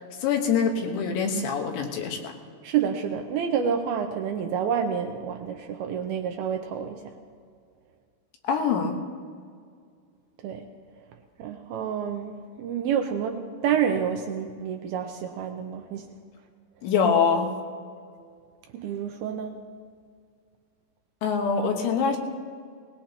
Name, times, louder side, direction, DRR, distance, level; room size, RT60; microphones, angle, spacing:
voice 1, 0.2-2.3 8.5-9.0 16.8-17.5 21.2-22.2, left 6 dB, 75° left, 3 dB, 3.5 m, -24 dB
voice 2, 2.6-7.1 10.4-10.6 11.4-16.1 18.7-19.6, right 8 dB, 85° right, 5 dB, 2.2 m, -28 dB
21.0 x 19.5 x 2.9 m, 2.1 s
omnidirectional pair, 5.3 m